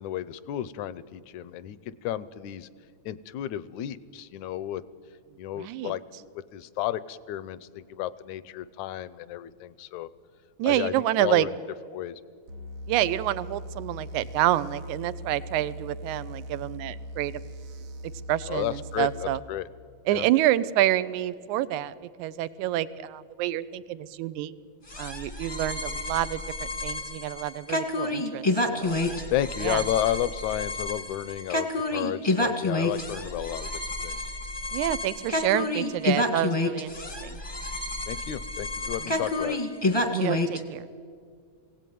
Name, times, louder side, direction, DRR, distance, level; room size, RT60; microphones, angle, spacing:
voice 1, 0.0-2.7 3.1-4.8 5.4-10.1 10.6-11.5 11.9-12.2 18.5-19.7 20.1-20.3 29.3-33.7 34.0-34.2 38.1-39.6, left 12 dB, 80° left, 17 dB, 2.0 m, -32 dB
voice 2, 5.6-5.9 10.6-11.5 12.9-17.4 18.3-19.4 20.1-24.5 25.0-28.5 28.7-29.0 29.6-29.8 34.7-36.9 37.2-37.4 39.0-39.3 40.1-40.9, right 14 dB, 85° right, 16 dB, 2.1 m, -28 dB
sound 1, 12.5-19.4, equal, 60° right, 1.7 m, -40 dB
sound 2, 24.9-40.6, left 2 dB, 15° left, 0.8 m, -29 dB
21.5 x 17.0 x 9.3 m, 2.1 s
omnidirectional pair, 3.4 m